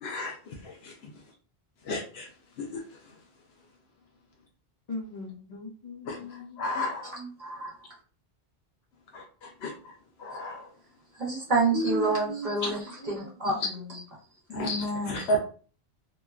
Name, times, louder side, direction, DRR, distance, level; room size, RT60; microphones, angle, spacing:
voice 1, 0.0-0.9 1.9-2.3 2.6-2.8 6.1-7.1 9.1-9.7 10.2-10.7 14.5-15.4, equal, 75° left, 0.8 m, -33 dB
voice 2, 4.9-6.6 11.9-14.0, left 1 dB, 45° left, 0.8 m, -40 dB
voice 3, 7.0-7.7 11.2-13.6 14.5-15.3, right 2 dB, 50° right, 1.1 m, -29 dB
3.0 x 2.1 x 2.3 m
omnidirectional pair, 1.1 m